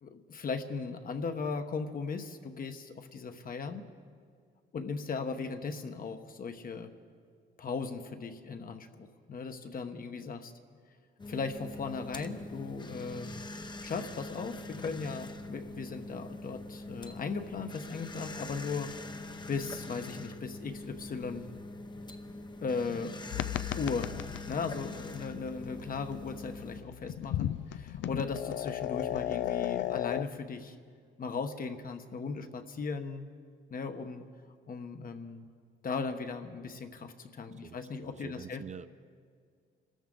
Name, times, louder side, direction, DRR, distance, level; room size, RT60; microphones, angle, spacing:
voice 1, 0.0-3.9 4.7-6.9 7.6-10.5 11.3-13.3 13.8-18.9 19.5-21.5 22.6-23.2 23.8-24.2 24.5-30.7 31.2-33.3 33.7-34.2 34.7-35.5 35.8-38.9, left 4 dB, 45° left, 7 dB, 1.1 m, -37 dB
sound 1, 11.2-26.8, left 2 dB, 20° left, 0.8 m, -44 dB
sound 2, 23.3-30.2, left 12 dB, 70° left, 0.4 m, -36 dB
voice 2, 37.5-38.9, right 6 dB, 35° right, 12 dB, 0.5 m, -47 dB
26.0 x 13.5 x 3.8 m, 2.1 s
cardioid pair, 90°, 20 cm